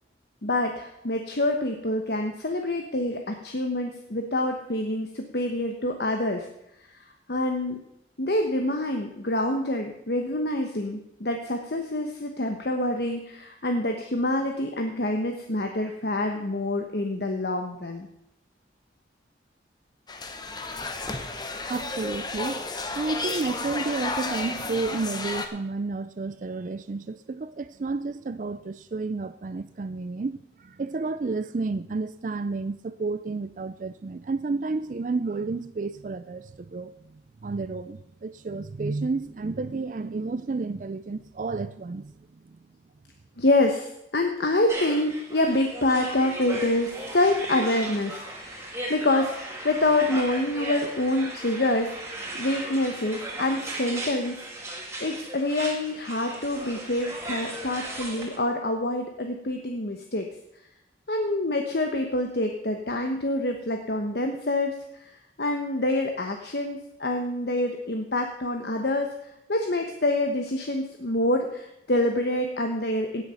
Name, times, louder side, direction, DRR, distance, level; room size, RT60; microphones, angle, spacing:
voice 1, 0.4-6.5 7.3-7.8 8.2-18.1 43.4-52.1 52.4-54.3 55.0-60.3 61.1-69.1 69.5-73.2, left 1 dB, 60° left, 1.1 m, -26 dB
sound 1, 20.1-25.5, left 3 dB, 20° left, 0.9 m, -32 dB
voice 2, 21.7-37.1 37.4-42.1 42.5-42.6, right 3 dB, 45° right, 0.4 m, -31 dB
sound 2, 44.7-58.4, right 1 dB, 15° right, 2.2 m, -36 dB
17.0 x 6.7 x 5.6 m
head